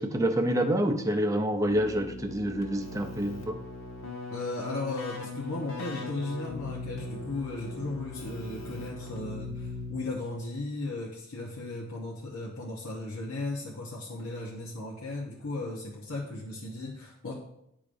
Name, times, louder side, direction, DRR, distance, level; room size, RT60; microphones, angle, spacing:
voice 1, 0.0-3.6, right 1 dB, 15° right, 6 dB, 0.4 m, -27 dB
Keyboard (musical), 1.6-10.4, left 2 dB, 70° left, 1.3 m, -40 dB
voice 2, 4.3-17.3, left 2 dB, 85° left, -3 dB, 1.0 m, -36 dB
10.5 x 5.0 x 2.6 m, 0.81 s
head